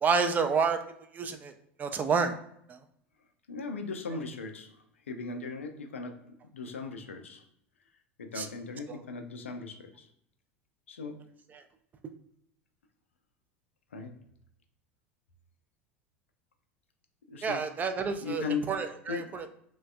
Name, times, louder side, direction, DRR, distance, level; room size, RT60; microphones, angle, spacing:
voice 1, 0.0-0.8 1.1-1.5 1.8-2.4 2.7-2.8 8.4-8.5 8.9-9.0 17.4-19.5, right 5 dB, 25° right, 7 dB, 0.4 m, -29 dB
voice 2, 3.5-7.4 8.2-10.1 10.9-11.2 13.9-14.1 17.3-17.7 18.2-19.3, left 4 dB, 75° left, 5 dB, 0.4 m, -38 dB
3.2 x 2.1 x 2.4 m, 0.74 s
figure-of-eight pair, 80°, 7 cm